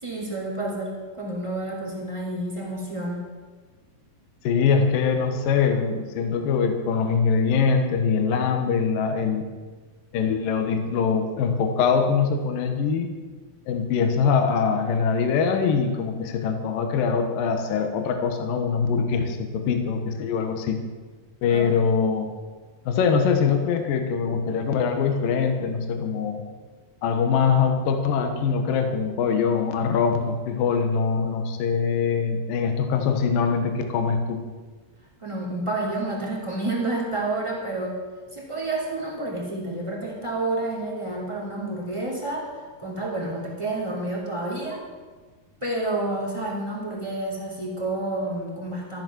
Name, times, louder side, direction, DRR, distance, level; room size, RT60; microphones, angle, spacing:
voice 1, 0.0-3.3 21.5-21.8 35.2-38.0 38.3-44.8 45.6-49.0, right 2 dB, 10° right, -2 dB, 1.9 m, -29 dB
voice 2, 4.4-9.5 10.1-13.1 13.7-20.8 21.4-22.3 22.9-26.4 27.0-34.4, left 6 dB, 70° left, 5 dB, 2.7 m, -23 dB
13.5 x 11.0 x 6.2 m, 1.4 s
omnidirectional pair, 4.7 m